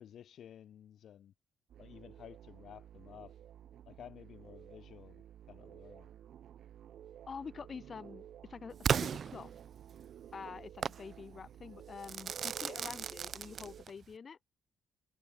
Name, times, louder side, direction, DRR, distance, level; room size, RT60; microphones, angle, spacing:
voice 1, 0.0-1.3 1.8-3.3 3.9-6.1, left 10 dB, 65° left, 6.3 m, -54 dB
sound 1, 1.7-13.9, right 10 dB, 70° right, 1.9 m, -53 dB
voice 2, 7.3-9.5 10.3-14.4, left 6 dB, 40° left, 1.7 m, -47 dB
Crackle / Fireworks, 8.8-10.0 10.8-11.1 12.0-14.0, right 7 dB, 50° right, 1.1 m, -35 dB
cardioid pair, 90°, 0 cm